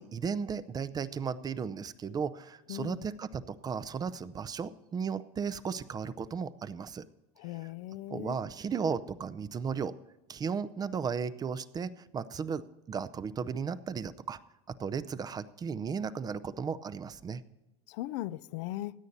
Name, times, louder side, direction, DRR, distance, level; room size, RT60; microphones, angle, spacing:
voice 1, 0.0-7.0 8.1-9.9 10.3-12.6 12.9-14.4 14.8-17.4, right 6 dB, 25° right, 0.6 m, -35 dB
voice 2, 2.7-3.1 7.4-8.4 17.9-18.9, left 15 dB, 75° left, 0.5 m, -38 dB
16.5 x 9.4 x 4.1 m
supercardioid pair, 115°, 15 cm